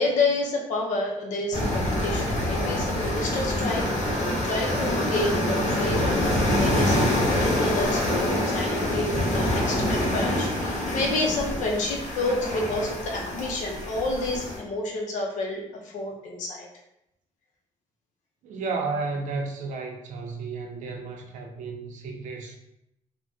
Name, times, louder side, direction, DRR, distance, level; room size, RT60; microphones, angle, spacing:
voice 1, 0.0-3.9 4.4-16.7, left 2 dB, 75° left, 0 dB, 0.6 m, -29 dB
sound 1, 1.5-14.6, left 1 dB, 60° left, 1.0 m, -26 dB
voice 2, 18.4-22.6, right 4 dB, 80° right, 2 dB, 0.5 m, -32 dB
3.4 x 2.1 x 2.6 m, 0.81 s
cardioid pair, 105°, 13 cm